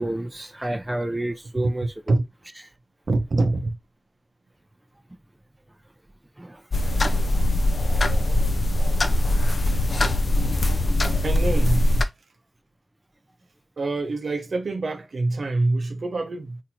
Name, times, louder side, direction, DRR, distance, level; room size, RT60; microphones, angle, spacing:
voice 1, 0.0-2.1 6.4-6.6 7.5-7.6, right 1 dB, 20° right, 0.5 m, -30 dB
voice 2, 3.1-3.8 11.2-11.9 13.8-16.6, right 2 dB, 75° right, 0.6 m, -25 dB
sound 1, 6.7-12.0, left 1 dB, 60° left, 0.4 m, -21 dB
2.9 x 2.6 x 4.1 m
cardioid pair, 55°, 0 cm